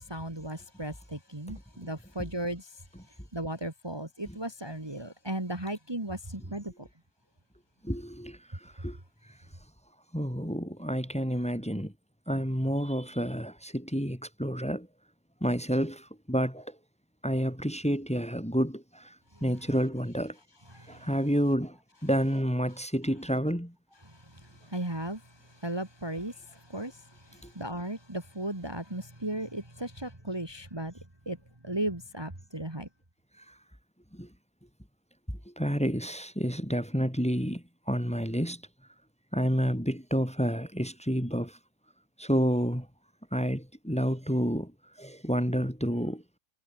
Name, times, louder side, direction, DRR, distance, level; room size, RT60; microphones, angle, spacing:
voice 1, 0.0-2.7 3.3-6.9 20.7-21.1 24.2-25.2 25.6-30.9 31.3-31.4 31.6-32.9, right 1 dB, 15° right, 2.9 m, -36 dB
voice 2, 7.8-9.0 10.1-11.9 12.3-14.9 15.4-16.7 17.2-19.1 19.4-20.4 20.9-21.8 22.0-23.7 27.4-27.5 34.1-34.3 35.6-38.6 39.3-41.6 42.2-42.9 43.3-44.7 45.0-46.2, equal, 5° left, 3.4 m, -29 dB
omnidirectional pair, 1.8 m